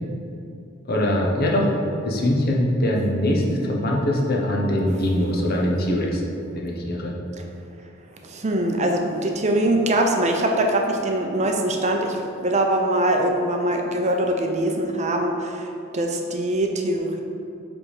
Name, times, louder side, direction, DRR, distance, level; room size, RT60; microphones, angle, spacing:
voice 1, 0.9-1.7 2.0-6.2 6.6-7.1, left 1 dB, 45° left, -1 dB, 0.9 m, -22 dB
voice 2, 8.2-17.2, right 1 dB, 35° right, 3 dB, 0.6 m, -23 dB
7.6 x 3.6 x 4.9 m, 2.6 s
head